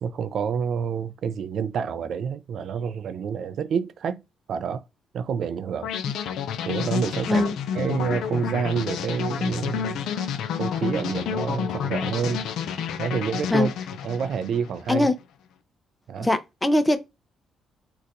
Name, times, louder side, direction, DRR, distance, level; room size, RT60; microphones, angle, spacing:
voice 1, 0.0-4.2 4.5-4.8 5.1-5.9 6.6-7.5 7.7-10.1 10.6-12.5 13.0-13.7 14.0-15.1 16.1-16.3, right 6 dB, 65° right, 0.3 m, -28 dB
sound 1, 5.8-14.9, left 8 dB, 80° left, 0.4 m, -30 dB
voice 2, 16.2-17.0, left 1 dB, 15° left, 0.5 m, -21 dB
3.9 x 2.3 x 2.5 m
cardioid pair, 90°, 0 cm